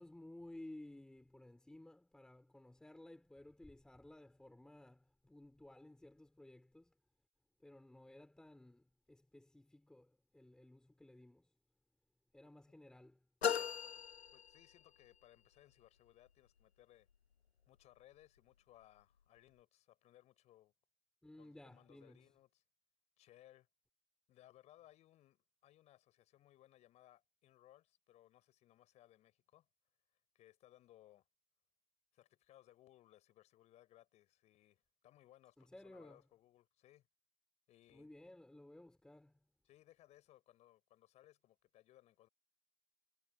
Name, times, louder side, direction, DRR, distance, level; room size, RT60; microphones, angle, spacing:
voice 1, 0.0-6.9 7.6-11.5 12.3-13.3 21.2-22.3 35.6-36.2 37.9-39.4, left 1 dB, ahead, 3.9 m, -57 dB
sound 1, 13.4-15.1, left 8 dB, 75° left, 1.0 m, -38 dB
voice 2, 14.3-17.1 17.7-20.7 21.4-22.6 23.2-23.7 24.3-29.7 30.3-31.3 32.1-37.1 37.7-38.1 39.6-42.3, left 14 dB, 20° left, 6.0 m, -65 dB
figure-of-eight pair, 130°, 32 cm